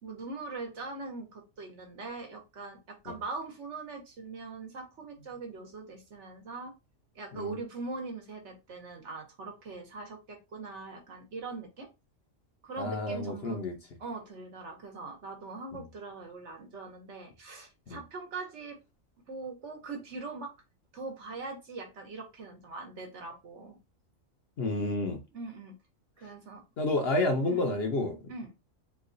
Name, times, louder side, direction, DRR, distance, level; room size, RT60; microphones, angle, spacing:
voice 1, 0.0-6.7 7.1-11.9 12.6-13.6 14.0-18.8 19.3-20.5 20.9-23.8 25.3-25.7 26.2-26.6 27.4-27.7 28.3-28.5, right 3 dB, 60° right, 1.2 m, -41 dB
voice 2, 12.8-13.7 17.9-18.0 24.6-25.2 26.8-28.2, left 2 dB, 55° left, 0.8 m, -30 dB
3.0 x 2.3 x 3.8 m
omnidirectional pair, 1.4 m